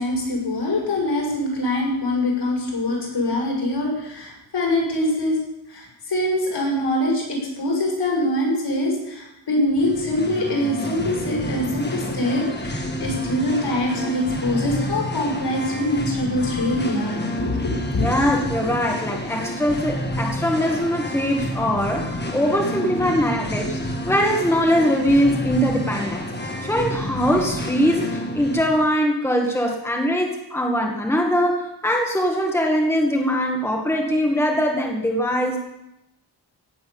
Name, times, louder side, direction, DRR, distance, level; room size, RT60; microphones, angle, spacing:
voice 1, 0.0-5.4 5.7-18.1, left 1 dB, 75° left, -2 dB, 6.7 m, -24 dB
Singing, 9.7-28.8, equal, 25° left, 1.7 m, -29 dB
voice 2, 18.0-23.8 24.1-26.3 26.6-35.6, equal, 5° left, 0 dB, 1.9 m, -22 dB
17.0 x 7.8 x 8.7 m, 0.87 s
wide cardioid pair, 165°, 42 cm